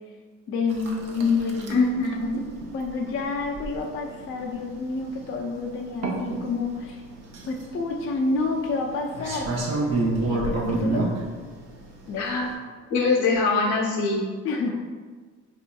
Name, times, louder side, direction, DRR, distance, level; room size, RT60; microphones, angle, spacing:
voice 1, 0.5-1.8 2.2-2.3 2.7-7.0 7.5-9.5 10.2-11.1 12.1-12.3 14.4-14.7, left 4 dB, 45° left, 1 dB, 0.4 m, -28 dB
sound 1, 0.7-12.5, right 2 dB, 60° right, 0.7 m, -31 dB
voice 2, 1.7-2.4 12.2-12.5 12.9-14.3, left 3 dB, 80° left, -1 dB, 0.8 m, -23 dB
4.2 x 2.7 x 2.2 m, 1.5 s
cardioid pair, 90°, 30 cm